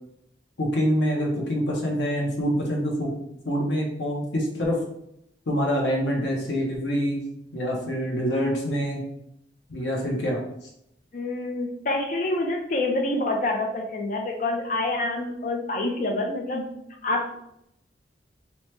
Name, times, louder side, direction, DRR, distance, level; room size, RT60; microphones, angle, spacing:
voice 1, 0.6-3.1 3.5-4.8 5.5-7.2 7.5-9.0 9.7-10.4, equal, 85° left, -1 dB, 0.6 m, -25 dB
voice 2, 11.1-16.6 17.0-17.4, left 2 dB, 45° left, 3 dB, 0.4 m, -27 dB
2.8 x 2.0 x 3.2 m, 0.78 s
head